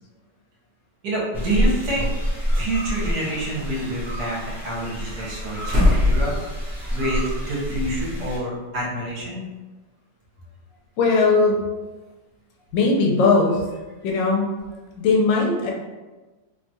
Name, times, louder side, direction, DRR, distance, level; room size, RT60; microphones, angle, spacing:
voice 1, 1.0-2.1 2.5-6.6 6.9-9.4, right 1 dB, 70° right, -5 dB, 1.3 m, -27 dB
sound 1, 1.3-8.4, equal, ahead, 0.8 m, -28 dB
sound 2, 2.0-2.1 2.9-3.9 4.8-7.1 7.4-7.5 9.1-9.2, left 2 dB, 45° right, 0.9 m, -24 dB
voice 2, 11.0-11.6 12.7-13.6 14.0-14.5 15.0-15.7, left 3 dB, 80° left, -1 dB, 1.2 m, -18 dB
3.1 x 2.2 x 2.6 m, 1.2 s
omnidirectional pair, 2.0 m